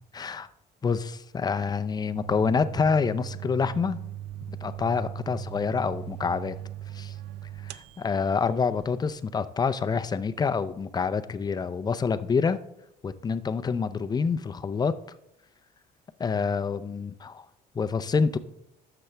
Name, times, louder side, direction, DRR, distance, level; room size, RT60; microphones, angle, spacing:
voice 1, 0.1-0.5 0.8-4.0 4.5-6.5 6.9-7.1 7.6-12.6 13.0-14.9 16.2-17.5 17.7-18.4, left 5 dB, 25° left, 12 dB, 0.5 m, -27 dB
sound 1, 2.1-9.2, right 12 dB, 80° right, 0.5 m, -39 dB
12.0 x 6.8 x 3.3 m, 0.84 s
cardioid pair, 110°, 17 cm